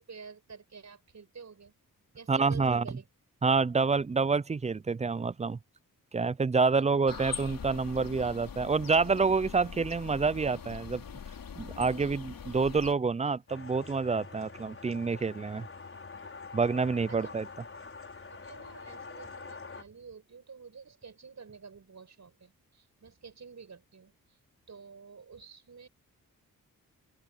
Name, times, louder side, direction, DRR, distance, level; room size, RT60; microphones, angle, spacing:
voice 1, 0.0-1.7 2.1-3.0 6.6-6.9 12.0-12.2 17.1-17.3 18.3-24.4 24.7-25.9, right 5 dB, 50° right, 6.8 m, -49 dB
voice 2, 2.3-2.8 3.4-5.6 6.1-11.0 11.6-15.7 16.5-17.4, right 4 dB, 20° right, 0.4 m, -27 dB
sound 1, 7.1-12.9, left 7 dB, 70° left, 3.7 m, -42 dB
sound 2, 13.5-19.8, left 4 dB, 35° left, 5.5 m, -46 dB
open air
wide cardioid pair, 95°, 35 cm